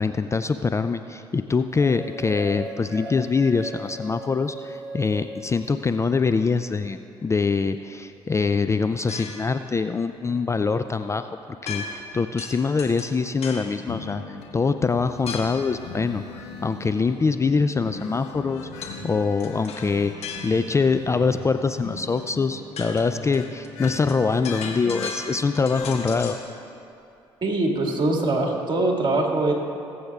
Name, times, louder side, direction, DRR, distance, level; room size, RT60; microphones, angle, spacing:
voice 1, 0.0-11.4 11.6-26.4, left 4 dB, 25° left, 10 dB, 0.4 m, -24 dB
sound 1, 1.7-6.2, right 1 dB, ahead, 2.5 m, -38 dB
sound 2, 9.1-9.6 11.7-12.1 12.4-13.8 15.3-15.7 18.8-19.0 19.4-20.8 22.2-22.3 22.6-26.5, left 4 dB, 60° left, 1.4 m, -37 dB
sound 3, 13.9-26.4, left 4 dB, 75° left, 1.3 m, -39 dB
voice 2, 27.4-29.5, right 2 dB, 40° right, 0 dB, 2.0 m, -22 dB
21.0 x 7.8 x 2.4 m, 2.7 s
hypercardioid pair, 55°, 12 cm